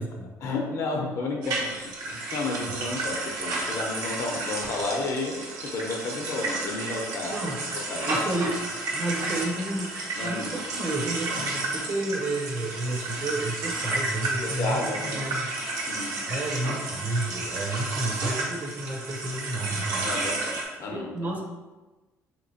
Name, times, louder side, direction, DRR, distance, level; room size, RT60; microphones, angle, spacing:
voice 1, 0.4-1.7 2.1-7.4 7.9-8.2 10.2-10.6 11.3-11.5 14.4-15.2 15.9-16.2 20.0-21.3, left 3 dB, 55° left, 0 dB, 0.6 m, -32 dB
sound 1, 1.4-20.6, right 2 dB, 85° right, 0.7 m, -32 dB
voice 2, 7.3-7.6 8.1-8.6 8.9-9.9 10.2-15.5 16.3-20.1 20.9-21.4, right 2 dB, 30° right, 0 dB, 0.5 m, -31 dB
3.4 x 2.9 x 2.7 m, 1.2 s
cardioid pair, 150°, 6 cm